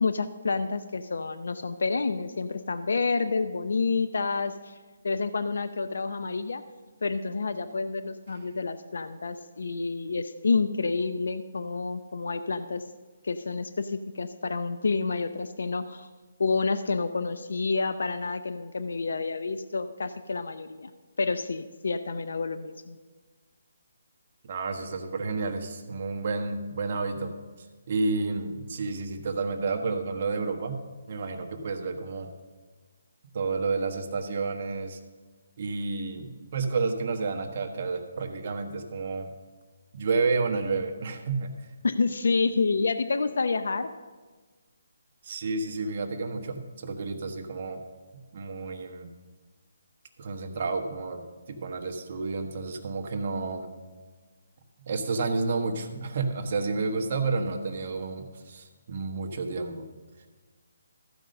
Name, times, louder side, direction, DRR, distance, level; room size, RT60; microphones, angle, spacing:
voice 1, 0.0-4.8 5.0-6.6 7.0-12.8 13.2-16.1 16.4-20.9 21.2-23.0 41.8-43.9, left 4 dB, 75° left, 11 dB, 0.5 m, -29 dB
voice 2, 24.4-27.3 27.9-30.8 31.1-32.3 33.3-35.0 35.6-39.3 39.9-41.7 45.2-47.8 48.3-49.1 50.2-53.7 54.9-59.9, right 4 dB, 40° right, 3 dB, 1.3 m, -30 dB
14.5 x 5.4 x 6.5 m, 1.4 s
hypercardioid pair, 165°, 0 cm